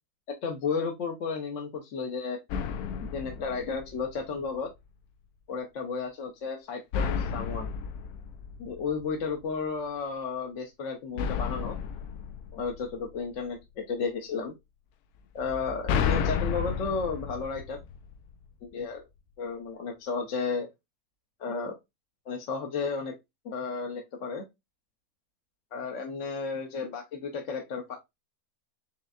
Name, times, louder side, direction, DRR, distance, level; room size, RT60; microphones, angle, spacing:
voice 1, 0.4-2.4 3.1-4.7 5.5-7.7 8.6-11.8 12.5-14.5 15.3-17.8 18.6-19.1 19.4-20.7 21.4-21.8 22.3-23.1 23.4-24.4 25.7-28.0, left 5 dB, 60° left, 2 dB, 1.1 m, -33 dB
sound 1, 2.5-4.4 6.9-9.3 11.2-13.4 15.4-18.5, left 6 dB, 80° left, 1.1 m, -32 dB
5.2 x 3.3 x 2.3 m, 0.20 s
omnidirectional pair, 1.6 m